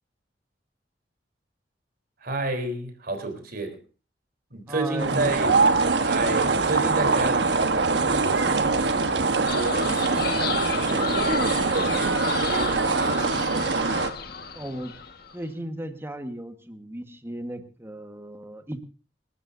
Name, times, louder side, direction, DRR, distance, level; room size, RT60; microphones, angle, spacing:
voice 1, 2.2-3.8 4.5-5.6 6.0-7.9 8.2-10.4 10.8-13.9, right 2 dB, 55° right, 3.7 m, -32 dB
voice 2, 4.7-5.4 14.5-14.9 15.3-18.8, right 1 dB, 15° right, 1.5 m, -35 dB
sound 1, 5.0-14.1, right 3 dB, 75° right, 1.2 m, -23 dB
sound 2, 9.5-15.3, left 5 dB, 60° left, 1.6 m, -33 dB
27.0 x 13.0 x 2.7 m
head